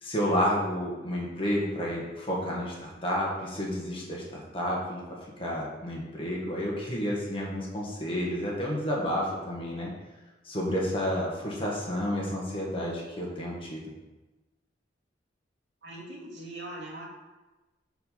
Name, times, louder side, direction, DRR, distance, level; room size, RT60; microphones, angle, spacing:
voice 1, 0.0-9.9 10.4-13.8, equal, 30° left, -4 dB, 1.7 m, -30 dB
voice 2, 15.8-17.1, right 1 dB, 75° right, -4 dB, 2.4 m, -41 dB
5.8 x 5.4 x 5.8 m, 1.1 s
head